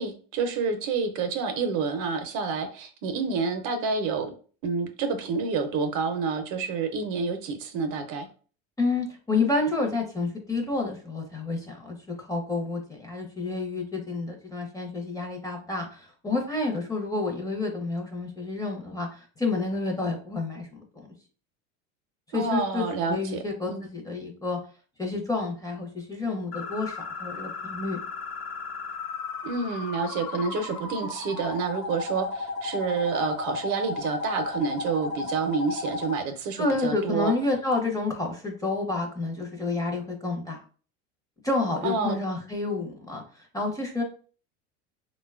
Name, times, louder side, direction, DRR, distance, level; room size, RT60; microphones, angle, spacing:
voice 1, 0.0-4.3 4.6-8.3 22.3-23.8 29.4-37.3 41.8-42.2, right 4 dB, 55° right, 8 dB, 0.6 m, -28 dB
voice 2, 8.8-21.1 22.3-24.6 25.0-28.0 36.6-40.6 41.4-44.0, left 3 dB, 10° left, 1 dB, 0.6 m, -29 dB
sound 1, 26.5-36.2, left 4 dB, 45° left, 0.7 m, -34 dB
3.7 x 2.2 x 2.3 m, 0.40 s
supercardioid pair, 110°, 36 cm